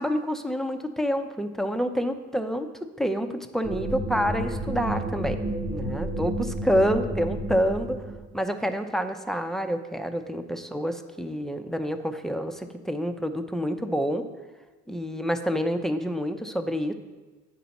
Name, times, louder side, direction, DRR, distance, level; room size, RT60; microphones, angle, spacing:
voice 1, 0.0-2.7 3.0-5.4 5.7-8.0 8.3-14.3 14.9-16.9, equal, ahead, 7 dB, 0.5 m, -28 dB
sound 1, 3.6-8.3, right 1 dB, 30° right, 0.8 m, -31 dB
8.5 x 5.7 x 4.1 m, 1.3 s
cardioid pair, 90°, 30 cm